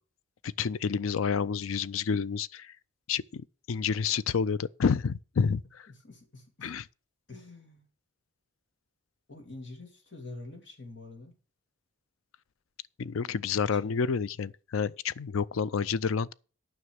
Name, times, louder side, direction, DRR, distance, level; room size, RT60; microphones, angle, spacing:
voice 1, 0.4-2.7 3.1-5.6 6.6-6.8 13.0-16.3, left 6 dB, 90° left, 0.5 m, -29 dB
voice 2, 5.9-6.7 7.3-7.8 9.3-11.3 13.7-14.0, left 2 dB, 60° left, 2.7 m, -46 dB
9.6 x 6.0 x 6.4 m
head